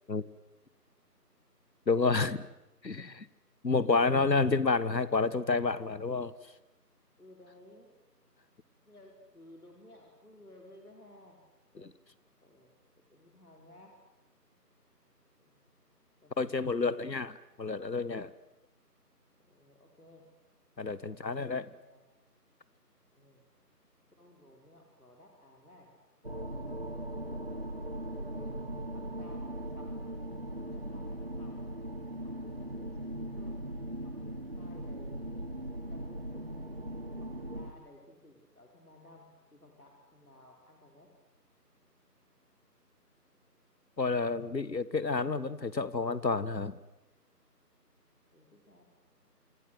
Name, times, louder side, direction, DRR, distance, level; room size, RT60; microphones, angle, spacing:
voice 1, 1.9-2.4 2.8-3.3 3.6-6.3 11.8-11.9 16.4-17.3 17.6-18.3 20.8-21.7 44.0-46.8, left 4 dB, 90° left, 17 dB, 1.6 m, -29 dB
voice 2, 7.2-7.9 8.8-11.4 12.4-12.7 13.1-14.0 15.4-15.7 16.2-17.2 19.4-20.3 20.9-22.0 23.1-23.5 24.2-25.9 26.3-28.6 28.9-29.9 30.5-31.7 32.2-33.6 34.0-36.6 37.1-41.1 48.3-48.8, left 1 dB, 65° left, 1 dB, 4.8 m, -57 dB
sound 1, 26.2-37.7, right 1 dB, 35° right, 1.7 m, -39 dB
26.0 x 24.0 x 8.0 m, 0.99 s
figure-of-eight pair, 180°, 49 cm